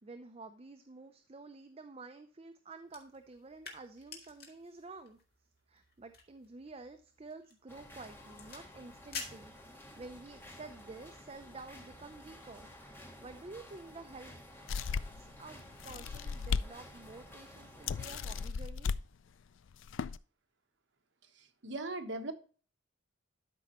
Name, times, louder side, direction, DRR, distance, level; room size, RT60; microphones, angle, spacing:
voice 1, 0.0-5.2 5.7-9.5 10.0-12.7 12.9-14.4 15.2-18.9, right 3 dB, 30° right, 7 dB, 0.6 m, -50 dB
sound 1, 2.8-10.2, left 5 dB, 55° left, 1.9 m, -50 dB
sound 2, 7.7-18.5, left 1 dB, 10° left, 1.5 m, -53 dB
sound 3, 14.7-15.3 15.8-16.7 17.1-17.2 17.9-19.0 19.7-20.2, left 5 dB, 75° left, 0.4 m, -35 dB
voice 2, 21.3-22.3, right 2 dB, 65° right, 6 dB, 1.2 m, -39 dB
12.0 x 5.2 x 3.0 m, 0.40 s
head